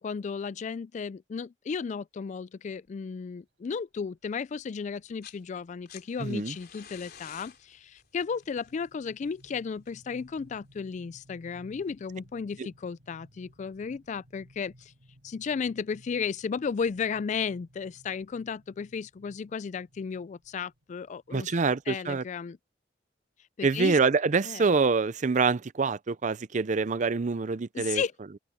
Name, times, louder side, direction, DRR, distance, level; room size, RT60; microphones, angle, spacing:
voice 1, 0.0-14.9 15.2-22.6 23.6-24.0 24.4-24.7 27.7-28.1, left 6 dB, 40° left, 0.3 m, -34 dB
sound 1, 2.9-3.1 4.0-4.1 4.5-4.6 4.9-5.2 5.6-22.0, equal, 80° right, 7.3 m, -58 dB
sound 2, 5.0-5.5 5.7-10.6 11.8-11.9, left 8 dB, 55° left, 3.7 m, -51 dB
voice 2, 6.2-6.5 12.6-12.7 21.3-22.2 23.6-28.0, right 4 dB, 45° right, 0.5 m, -26 dB
head